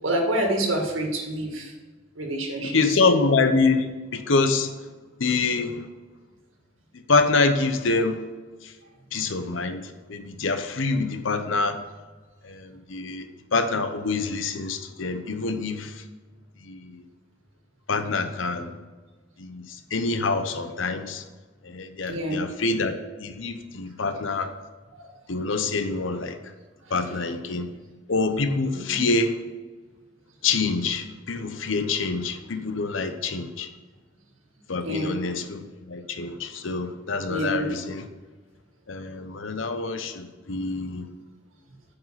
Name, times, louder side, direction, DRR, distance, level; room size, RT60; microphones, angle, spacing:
voice 1, 0.0-1.7 2.2-2.8 22.0-22.4 24.9-25.1 28.8-29.0 34.8-35.2 37.3-37.7, right 1 dB, 85° right, 1 dB, 1.9 m, -27 dB
voice 2, 2.7-4.8 5.2-5.8 7.1-8.2 8.6-8.7 9.1-11.8 12.4-16.0 16.6-17.0 17.9-18.7 19.4-21.2 21.6-24.5 25.3-26.4 26.9-27.7 28.1-29.4 30.4-33.7 34.7-38.1 38.9-41.1, left 3 dB, 75° left, 9 dB, 0.8 m, -26 dB
9.5 x 5.4 x 5.8 m, 1.3 s
head